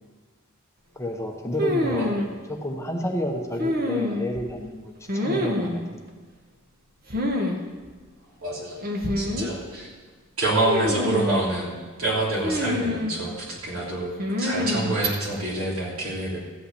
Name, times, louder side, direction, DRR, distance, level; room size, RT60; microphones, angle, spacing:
voice 1, 0.9-6.0, left 1 dB, 15° left, 2 dB, 1.0 m, -30 dB
sound 1, 1.6-2.3 3.6-4.4 5.1-5.8 7.1-7.6 7.8-7.9 8.8-9.5 10.6-11.4 12.4-13.2 14.2-15.0, left 1 dB, 45° right, 1.4 m, -26 dB
voice 2, 8.4-8.8 9.2-9.9 10.4-14.1 14.4-16.4, right 2 dB, 75° right, -3 dB, 3.3 m, -27 dB
14.0 x 5.6 x 8.4 m, 1.4 s
head